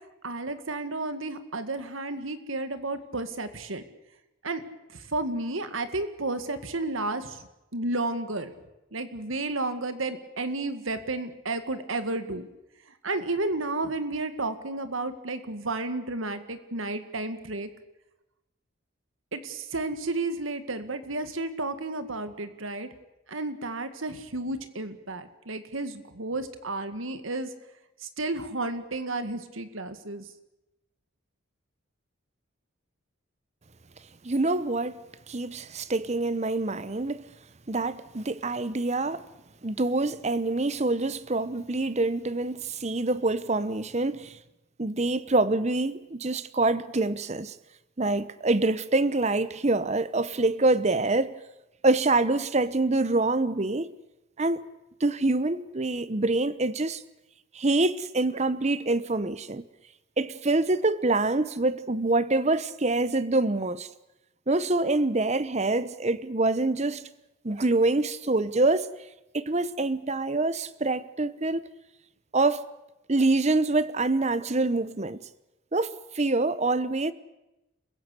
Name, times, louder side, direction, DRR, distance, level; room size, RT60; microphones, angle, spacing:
voice 1, 0.2-3.8 4.4-4.6 4.9-7.5 7.7-8.5 8.9-12.5 13.0-17.7 19.3-22.9 23.3-27.5 28.0-30.2, right 2 dB, 75° right, 2.0 m, -32 dB
voice 2, 34.2-35.0 35.3-37.2 37.7-39.3 39.6-44.4 44.8-47.5 48.0-51.4 51.8-53.9 54.4-54.6 55.0-57.0 57.5-59.6 60.2-63.9 64.5-67.1 67.4-68.9 69.3-71.7 72.3-72.6 73.1-75.2 75.7-77.1, right 2 dB, 35° right, 0.9 m, -25 dB
28.5 x 16.0 x 8.3 m
head